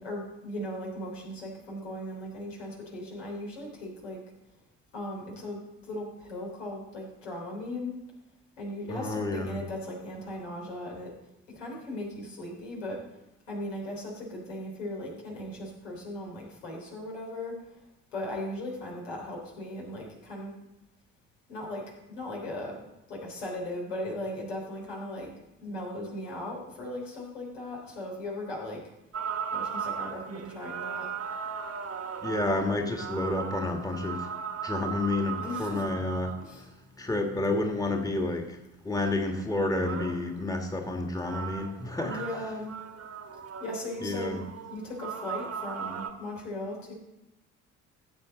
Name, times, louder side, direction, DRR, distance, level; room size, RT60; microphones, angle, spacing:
voice 1, 0.0-4.2 4.9-8.0 8.6-11.1 11.5-13.0 13.5-17.8 18.1-20.5 21.5-22.8 23.1-25.3 25.6-28.8 29.5-31.1 35.4-35.9 36.4-36.6 42.0-42.7 43.6-46.9, left 1 dB, 80° left, -2 dB, 3.4 m, -38 dB
voice 2, 8.9-9.6 32.2-34.3 34.6-36.7 37.0-38.6 38.8-42.2 44.0-44.4, left 2 dB, 10° left, 3 dB, 1.7 m, -30 dB
sound 1, 29.1-36.5 39.3-40.3 41.2-46.1, right 6 dB, 40° right, 1.3 m, -37 dB
15.5 x 7.8 x 3.9 m, 0.94 s
figure-of-eight pair, 45°, 38 cm